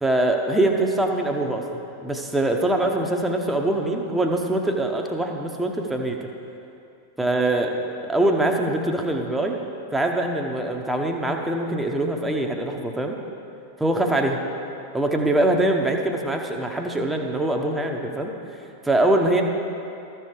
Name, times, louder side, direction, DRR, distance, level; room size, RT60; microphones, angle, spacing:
voice 1, 0.0-1.6 2.0-6.3 7.2-9.6 9.9-13.2 13.8-14.4 14.9-18.3 18.8-19.4, right 1 dB, 5° right, 2 dB, 0.9 m, -23 dB
13.5 x 4.6 x 4.9 m, 2.7 s
figure-of-eight pair, 90°, 0 cm